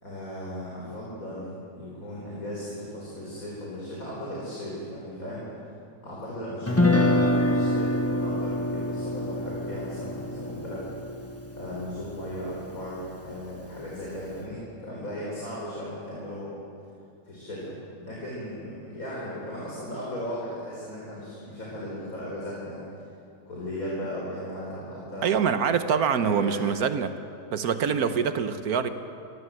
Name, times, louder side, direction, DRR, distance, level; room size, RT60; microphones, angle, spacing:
voice 1, 0.0-5.5 6.0-11.3 11.6-16.6 17.2-22.8 23.4-25.4 26.2-26.6 27.9-28.1, equal, 65° left, -5 dB, 5.0 m, -36 dB
Guitar, 6.7-12.8, left 1 dB, 10° left, 1.3 m, -26 dB
voice 2, 25.2-27.2 27.5-28.9, right 7 dB, 85° right, 9 dB, 1.5 m, -25 dB
25.0 x 17.5 x 7.7 m, 2.5 s
omnidirectional pair, 1.6 m